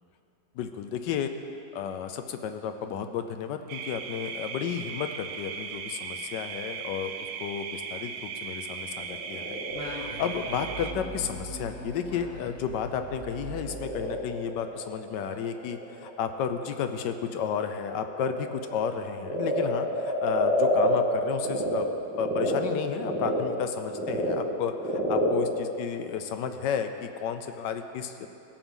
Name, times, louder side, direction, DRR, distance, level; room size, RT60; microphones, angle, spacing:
voice 1, 0.6-1.3 1.7-7.1 7.4-21.9 22.2-28.3, left 7 dB, 80° left, 8 dB, 1.2 m, -32 dB
sound 1, 3.7-10.9, right 6 dB, 70° right, 0.8 m, -37 dB
Frog, 8.9-21.7 22.1-26.8, equal, 5° right, 2.4 m, -31 dB
Singing, 9.7-14.5, right 1 dB, 40° left, 1.1 m, -41 dB
18.0 x 7.0 x 3.7 m, 2.7 s
omnidirectional pair, 1.9 m